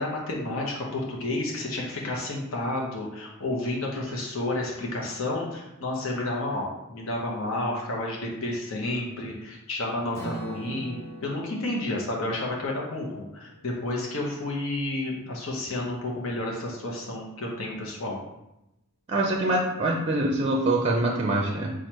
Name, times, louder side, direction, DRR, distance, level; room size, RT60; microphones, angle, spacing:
voice 1, 0.0-11.0 11.2-18.2, left 2 dB, 75° left, -2 dB, 0.9 m, -31 dB
Strum, 10.1-14.3, right 1 dB, 15° left, 1.2 m, -42 dB
voice 2, 19.1-21.7, right 1 dB, 30° right, 0 dB, 0.4 m, -24 dB
4.5 x 2.4 x 4.6 m, 0.90 s
head